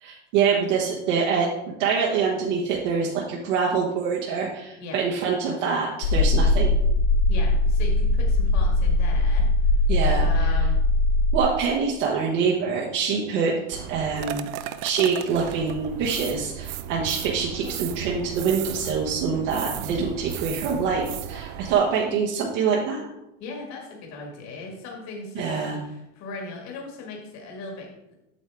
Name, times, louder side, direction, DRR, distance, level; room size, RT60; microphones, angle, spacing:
voice 1, 0.0-1.5 1.8-6.7 9.9-10.6 11.3-14.5 14.8-23.1 25.3-25.8, right 6 dB, 65° right, -2 dB, 1.4 m, -25 dB
sound 1, 6.0-11.4, left 2 dB, 80° left, 0.9 m, -20 dB
voice 2, 7.3-9.9 10.1-10.8 23.4-28.2, left 3 dB, 45° left, 0 dB, 2.0 m, -38 dB
sound 2, 13.7-21.7, right 11 dB, 50° right, 0.5 m, -35 dB
8.3 x 6.5 x 3.5 m, 0.90 s
supercardioid pair, 130°, 39 cm